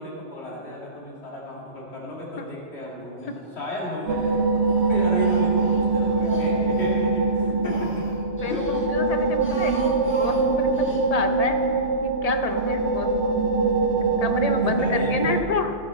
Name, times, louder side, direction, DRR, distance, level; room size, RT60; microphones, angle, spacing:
voice 1, 0.0-8.1 8.4-8.7 9.4-9.6 14.6-15.4, left 1 dB, 65° left, -5 dB, 2.4 m, -34 dB
Speech, 3.2-3.9 4.2-7.0 7.4-8.9 9.3-11.0, equal, 10° left, 1.4 m, -40 dB
sound 1, 4.1-15.4, right 3 dB, 65° right, 0.9 m, -23 dB
voice 2, 8.4-13.4 14.0-15.7, left 4 dB, 45° left, 7 dB, 0.5 m, -29 dB
17.5 x 8.5 x 3.1 m, 2.4 s
omnidirectional pair, 1.2 m